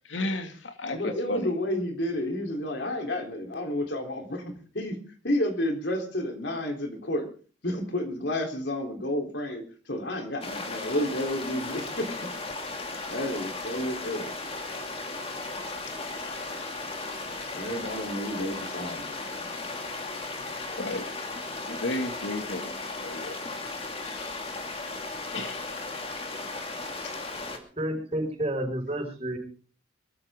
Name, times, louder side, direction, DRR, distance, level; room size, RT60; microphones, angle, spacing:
voice 1, 0.1-1.5 20.8-21.1 21.7-22.7 23.0-23.4 24.0-24.4 25.3-25.7, left 2 dB, 85° left, 6 dB, 2.3 m, -33 dB
voice 2, 0.9-4.4 4.7-5.0 5.2-7.3 7.6-9.6 9.9-12.1 13.1-14.3 17.5-19.4, left 1 dB, 70° left, 4 dB, 3.6 m, -30 dB
sound 1, 10.4-27.6, left 3 dB, 30° left, 2.5 m, -36 dB
voice 3, 27.5-29.4, right 1 dB, 30° right, 3 dB, 5.5 m, -31 dB
23.0 x 14.5 x 3.7 m, 0.40 s
head